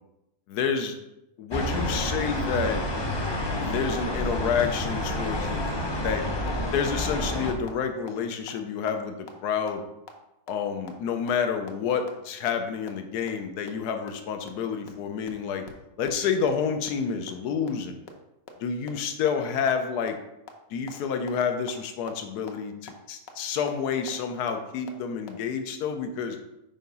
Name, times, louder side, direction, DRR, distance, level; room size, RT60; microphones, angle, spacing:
voice 1, 0.5-0.9 1.4-2.8 3.6-5.6 5.9-6.4 6.7-9.8 10.5-15.6 16.0-18.0 18.6-20.2 20.7-26.4, left 6 dB, 85° left, 6 dB, 1.3 m, -29 dB
sound 1, 1.5-7.5, left 1 dB, 25° left, 0.5 m, -29 dB
sound 2, 5.7-5.8 6.1-6.2 6.5-6.6 6.9-7.0 7.3-7.4 7.7-7.8 8.1-8.2 8.5-8.6 8.9-9.0 9.3-9.4 9.7-9.8 10.1-10.2 10.5-10.6 10.9-11.0 11.3-11.4 11.7-11.8 12.1-12.2 12.5-12.6 12.9-13.0 13.3-13.4 13.7-13.8 14.1-14.2 14.5-14.6 14.9-15.0 15.3-15.4 15.6-15.7 16.0-16.1 16.5-16.6 16.9-17.0 17.3-17.4 17.7-17.8 18.1-18.2 18.5-18.6 18.9-19.0 19.3-19.4 19.7-19.8 20.1-20.2 20.5-20.6 20.9-21.0 21.3-21.4 21.7-21.8 22.1-22.2 22.5-22.6 22.9-23.0 23.3-23.4 23.7-23.8 24.1-24.2 24.5-24.6 24.9-25.0 25.3-25.4, left 7 dB, 65° left, 1.3 m, -42 dB
5.7 x 4.6 x 5.3 m, 0.88 s
omnidirectional pair, 1.6 m